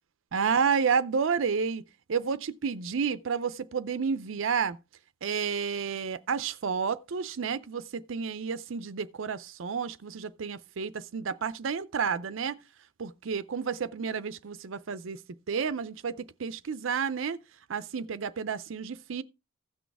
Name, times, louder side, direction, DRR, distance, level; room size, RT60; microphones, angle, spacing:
voice 1, 0.3-1.8 2.1-4.8 5.2-12.6 13.0-15.2 15.5-17.4 17.7-19.2, right 6 dB, 70° right, 0.5 m, -30 dB
16.0 x 6.2 x 3.4 m
head